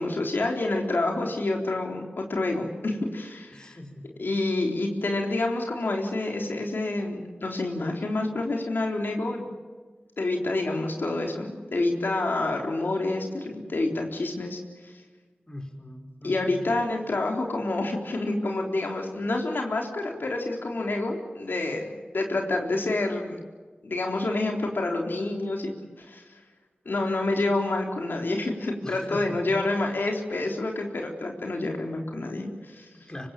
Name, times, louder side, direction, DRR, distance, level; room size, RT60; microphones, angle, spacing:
voice 1, 0.0-3.8 4.2-9.5 10.2-14.9 16.2-23.4 23.8-26.4 26.9-32.9, left 2 dB, 75° left, 2 dB, 3.8 m, -28 dB
voice 2, 3.5-4.0 15.5-16.6 28.8-29.4 32.9-33.3, left 1 dB, 20° left, 4 dB, 5.0 m, -40 dB
26.0 x 24.0 x 7.6 m, 1.4 s
wide cardioid pair, 60°, 3 cm